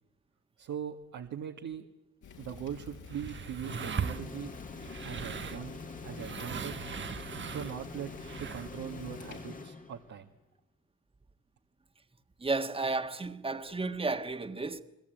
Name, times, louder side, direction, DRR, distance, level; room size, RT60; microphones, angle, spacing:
voice 1, 0.6-1.9 2.4-4.6 5.0-5.8 6.0-6.8 7.5-8.1 8.4-10.3, right 9 dB, 75° right, 1.9 m, -41 dB
Fire, 2.2-9.4, left 6 dB, 75° left, 6.6 m, -50 dB
sound 1, 2.5-8.8, right 7 dB, 40° right, 1.1 m, -40 dB
sound 2, 3.6-10.4, left 4 dB, 25° left, 1.8 m, -46 dB
voice 2, 12.4-14.8, right 3 dB, 20° right, 1.6 m, -32 dB
30.0 x 21.0 x 9.2 m
cardioid pair, 90°, 30 cm